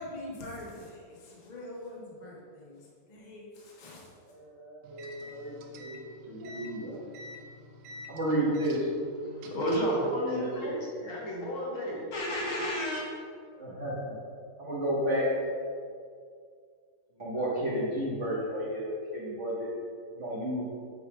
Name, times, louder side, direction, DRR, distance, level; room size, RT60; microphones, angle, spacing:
voice 1, 0.0-4.1, left 1 dB, 25° left, -5 dB, 1.0 m, -44 dB
voice 2, 4.2-7.0 8.1-8.9 10.2-10.7 13.5-14.2 14.6-15.3 17.2-19.7 20.0-20.6, right 1 dB, 40° right, -7 dB, 1.3 m, -32 dB
sound 1, 4.8-10.0, equal, 85° right, 1.7 m, -47 dB
voice 3, 9.4-13.0, equal, 70° left, -5 dB, 2.5 m, -31 dB
8.7 x 3.6 x 4.9 m, 2.2 s
omnidirectional pair, 2.4 m